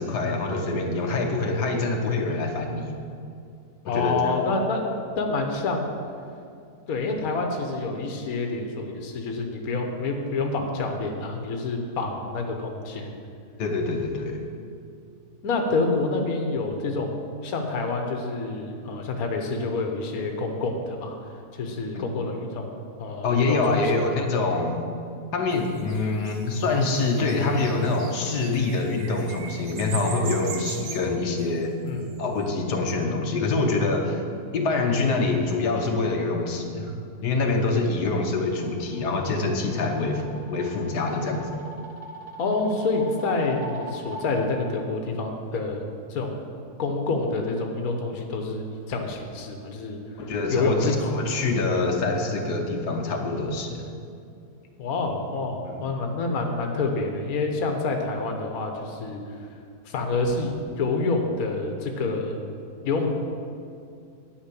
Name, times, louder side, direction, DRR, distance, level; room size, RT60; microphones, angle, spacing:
voice 1, 0.0-2.9 3.8-4.3 13.6-14.4 21.9-22.0 23.2-24.8 25.3-31.7 32.2-34.2 34.5-36.9 37.2-41.5 50.2-53.9 55.6-55.9, left 3 dB, 90° left, 2 dB, 1.6 m, -25 dB
voice 2, 3.8-4.8 5.2-5.9 6.9-13.1 15.4-17.2 17.4-21.2 21.5-22.7 23.0-24.0 31.8-32.2 42.4-45.8 46.1-46.4 46.8-50.0 50.5-51.0 54.8-59.2 59.8-62.4 62.8-63.1, left 3 dB, 65° left, 3 dB, 1.5 m, -27 dB
sound 1, 25.5-32.3, right 7 dB, 75° right, 1.4 m, -40 dB
sound 2, 38.6-44.5, right 1 dB, 30° right, 0.7 m, -41 dB
10.5 x 5.5 x 8.4 m, 2.4 s
omnidirectional pair, 1.7 m